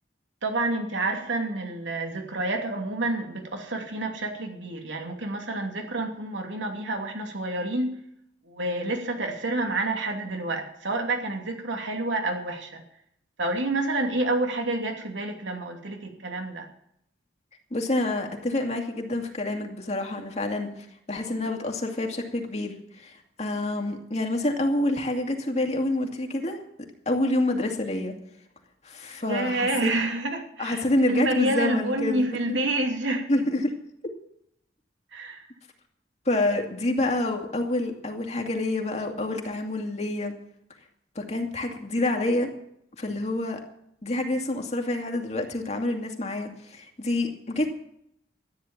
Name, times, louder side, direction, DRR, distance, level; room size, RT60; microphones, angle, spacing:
voice 1, 0.4-7.9 8.4-12.8 13.4-16.7 29.2-30.8 31.1-33.3 35.1-35.4, right 2 dB, 90° right, 3 dB, 2.8 m, -28 dB
voice 2, 17.7-20.7 21.1-26.6 27.1-28.1 28.8-29.9 30.6-32.6 33.3-33.7 36.3-40.3 41.2-42.5 43.0-43.6 44.0-47.7, left 1 dB, 40° left, 3 dB, 2.4 m, -27 dB
13.5 x 10.0 x 7.4 m, 0.72 s
head